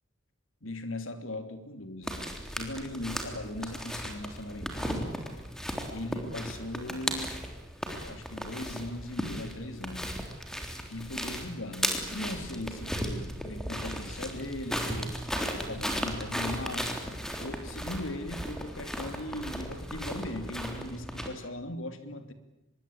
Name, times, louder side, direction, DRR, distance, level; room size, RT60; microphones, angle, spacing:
voice 1, 0.6-2.2 2.6-5.1 5.9-7.3 7.9-10.1 10.9-16.9 17.4-22.3, left 1 dB, 80° left, 9 dB, 2.9 m, -39 dB
sound 1, 2.0-21.3, equal, 5° left, 3.5 m, -36 dB
25.0 x 22.0 x 8.8 m, 0.86 s
head